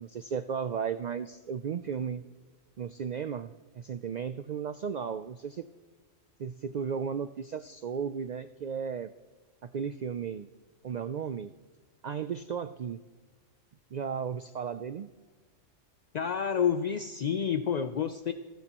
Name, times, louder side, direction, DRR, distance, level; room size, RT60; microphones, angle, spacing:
voice 1, 0.0-2.2 2.8-5.7 6.4-9.1 9.6-10.5 10.8-11.5 12.0-13.0 13.9-15.1, right 7 dB, 90° right, 11 dB, 0.3 m, -35 dB
voice 2, 16.1-18.3, left 7 dB, 60° left, 9 dB, 0.4 m, -29 dB
29.0 x 10.5 x 3.0 m, 1.4 s
omnidirectional pair, 1.3 m